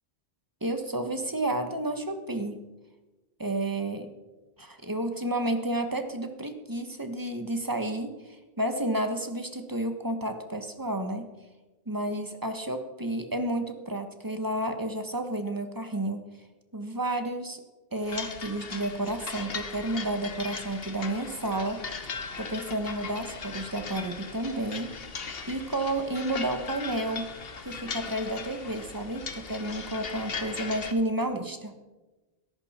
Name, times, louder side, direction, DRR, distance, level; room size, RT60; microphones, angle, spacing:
voice 1, 0.6-2.6 3.4-4.1 4.6-11.3 11.9-16.3 16.7-17.6 17.9-21.8 22.4-27.3 27.6-31.7, right 1 dB, 20° right, 7 dB, 1.3 m, -31 dB
sound 1, 18.0-30.9, left 5 dB, 60° left, 1.3 m, -39 dB
17.0 x 14.0 x 4.4 m, 1.1 s
omnidirectional pair, 1.1 m